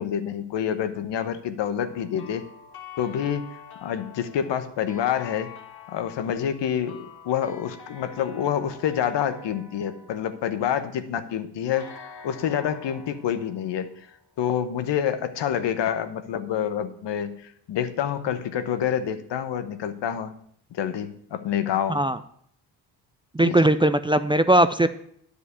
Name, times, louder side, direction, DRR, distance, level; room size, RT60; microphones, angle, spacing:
voice 1, 0.0-2.4 3.0-3.5 3.8-5.5 5.9-11.9 12.2-14.1 14.4-20.3 20.7-22.0 23.4-23.7, left 9 dB, 75° left, 10 dB, 1.1 m, -27 dB
sound 1, 1.8-11.0 11.8-14.6, left 6 dB, 60° left, 2.5 m, -46 dB
voice 2, 23.3-24.9, right 1 dB, 10° right, 11 dB, 0.5 m, -19 dB
10.0 x 5.1 x 8.2 m, 0.66 s
cardioid pair, 75°, 43 cm